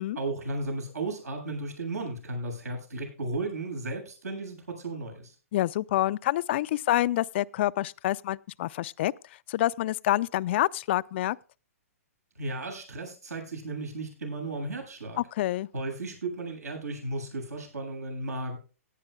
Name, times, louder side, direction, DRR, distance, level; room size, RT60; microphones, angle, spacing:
voice 1, 0.1-5.3 12.3-15.2 15.7-18.6, right 2 dB, 85° right, 7.8 m, -34 dB
voice 2, 5.5-9.1 9.5-11.4 15.2-15.7, left 14 dB, 45° left, 0.4 m, -27 dB
17.5 x 11.0 x 2.3 m
hypercardioid pair, 135°, 8 cm